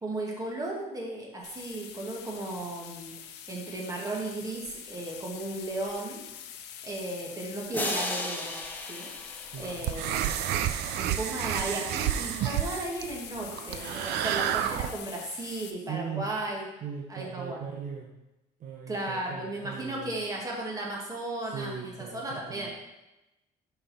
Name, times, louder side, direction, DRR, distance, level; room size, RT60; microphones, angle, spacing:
voice 1, 0.0-3.1 3.5-6.2 6.8-8.6 8.9-9.1 9.6-10.6 10.9-16.7 17.1-17.6 18.9-22.7, right 2 dB, 20° right, -2 dB, 1.9 m, -35 dB
sound 1, 1.4-15.7, left 9 dB, 80° left, 0.7 m, -45 dB
sound 2, 7.7-10.6, left 1 dB, 10° left, 1.0 m, -35 dB
voice 2, 9.5-10.2 15.9-16.3 16.8-18.1 18.6-20.2 21.5-22.7, right 7 dB, 50° right, 0 dB, 0.9 m, -39 dB
sound 3, 9.6-15.0, right 11 dB, 80° right, 0.4 m, -30 dB
5.7 x 5.6 x 4.2 m, 0.97 s
cardioid pair, 110°, 17 cm